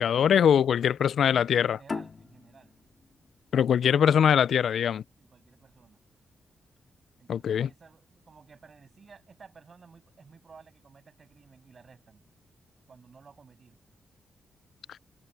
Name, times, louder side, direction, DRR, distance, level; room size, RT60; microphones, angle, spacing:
voice 1, 0.0-1.8 3.5-5.0 7.3-7.7, left 8 dB, 75° left, 0.4 m, -22 dB
voice 2, 1.2-2.7 5.2-6.0 7.2-12.2 12.9-13.8, right 5 dB, 55° right, 7.0 m, -54 dB
sound 1, 1.9-5.1, left 4 dB, 50° left, 2.5 m, -40 dB
supercardioid pair, 50°, 0 cm